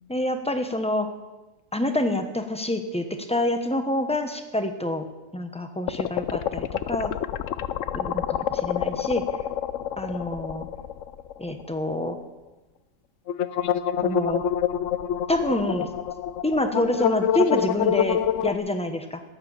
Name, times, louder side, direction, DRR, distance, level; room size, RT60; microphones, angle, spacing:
voice 1, 0.1-1.1 1.7-5.1 5.3-7.1 7.9-9.2 10.0-10.7 11.4-12.2 14.0-14.4 15.3-15.9 16.4-19.2, left 1 dB, 5° left, 7 dB, 0.6 m, -27 dB
sound 1, 5.9-11.6 11.9-12.0 13.3-18.5, left 9 dB, 70° left, 0.7 m, -27 dB
14.0 x 10.0 x 7.2 m, 1.1 s
omnidirectional pair, 1.8 m